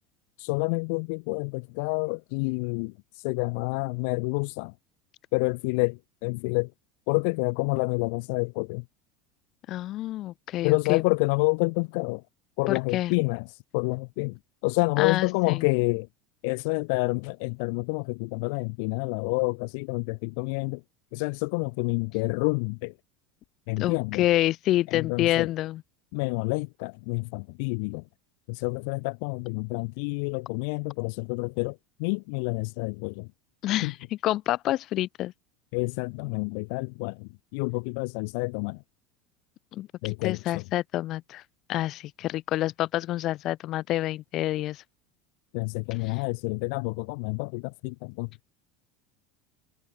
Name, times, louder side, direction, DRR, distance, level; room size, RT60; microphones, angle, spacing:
voice 1, 0.4-2.9 3.2-4.7 5.3-6.7 7.1-8.8 10.6-12.2 12.6-13.5 13.7-14.4 14.6-16.1 16.4-20.8 21.1-22.9 23.7-24.2 24.9-25.5 26.1-28.0 28.5-33.3 33.8-33.9 35.7-38.8 40.0-40.6 45.5-48.5, left 33 dB, 60° left, 1.1 m, -28 dB
voice 2, 9.7-11.0 12.7-13.1 15.0-15.7 23.8-25.8 33.6-34.0 34.2-35.3 39.7-41.4 41.7-44.8 46.1-46.2, left 15 dB, 35° left, 1.6 m, -28 dB
cardioid pair, 170°, 0 cm